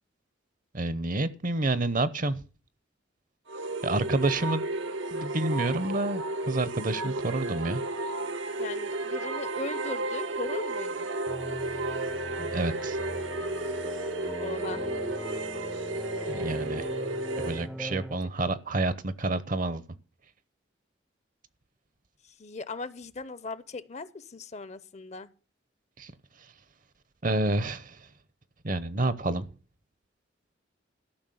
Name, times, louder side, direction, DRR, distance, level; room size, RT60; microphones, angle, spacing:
voice 1, 0.7-2.4 3.8-4.6 5.1-7.8 12.4-13.0 16.3-16.9 17.4-19.8 26.0-26.1 27.2-28.1 28.6-29.5, right 2 dB, 45° right, 0.8 m, -29 dB
sound 1, 3.5-17.7, right 2 dB, 80° right, 1.0 m, -33 dB
voice 2, 8.6-11.1 14.4-14.9 22.2-25.3, left 3 dB, 35° left, 0.7 m, -39 dB
sound 2, 11.3-18.2, equal, ahead, 0.5 m, -40 dB
13.0 x 6.1 x 7.8 m
head